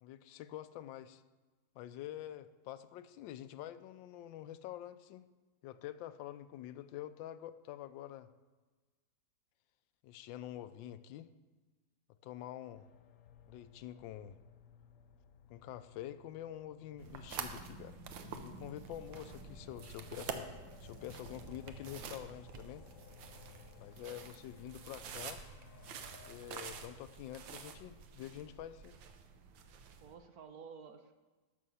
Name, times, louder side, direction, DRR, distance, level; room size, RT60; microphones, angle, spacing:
voice 1, 0.0-1.2 1.7-5.3 5.6-8.3 10.0-11.3 12.2-12.9 13.5-14.4 15.5-20.5 20.8-22.8 23.8-25.4 26.2-29.0, left 12 dB, 90° left, 13 dB, 1.3 m, -47 dB
sound 1, 12.7-26.4, left 8 dB, 75° left, 0.7 m, -59 dB
sound 2, 17.0-30.1, right 6 dB, 90° right, 1.6 m, -48 dB
voice 2, 19.1-19.5 30.0-31.1, right 6 dB, 65° right, 7 dB, 1.1 m, -53 dB
12.5 x 6.5 x 5.6 m, 1.3 s
omnidirectional pair, 2.0 m